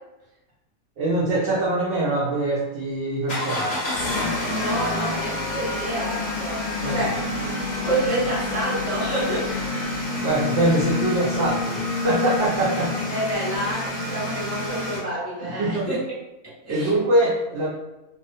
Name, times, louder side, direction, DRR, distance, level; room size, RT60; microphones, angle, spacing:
voice 1, 1.0-3.8 6.8-6.9 10.2-12.9 15.4-15.9 16.7-17.7, right 2 dB, 70° right, -5 dB, 0.6 m, -23 dB
sound 1, 3.3-15.0, left 2 dB, 55° left, 0.6 m, -28 dB
voice 2, 4.5-6.6 6.9-7.1 7.8-9.5 13.1-16.0 16.6-16.9, right 1 dB, 10° right, -9 dB, 0.9 m, -28 dB
2.4 x 2.2 x 2.5 m, 0.98 s
omnidirectional pair, 1.6 m